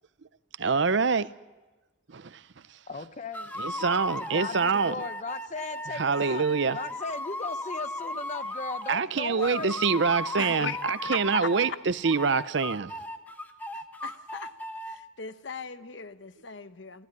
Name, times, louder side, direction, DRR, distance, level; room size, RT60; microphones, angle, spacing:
voice 1, 0.6-1.3 2.1-2.4 3.6-4.9 6.0-6.8 8.9-12.9, right 5 dB, 65° right, 0.6 m, -25 dB
voice 2, 2.9-3.5 4.2-6.4 6.7-9.8, left 3 dB, 35° left, 0.7 m, -37 dB
sound 1, 3.3-9.0 9.4-11.7 12.0-14.9, left 1 dB, 10° left, 1.0 m, -36 dB
voice 3, 10.3-10.8 11.0-11.5 13.7-14.5 14.8-17.1, left 5 dB, 70° left, 1.0 m, -38 dB
25.0 x 15.0 x 9.6 m
head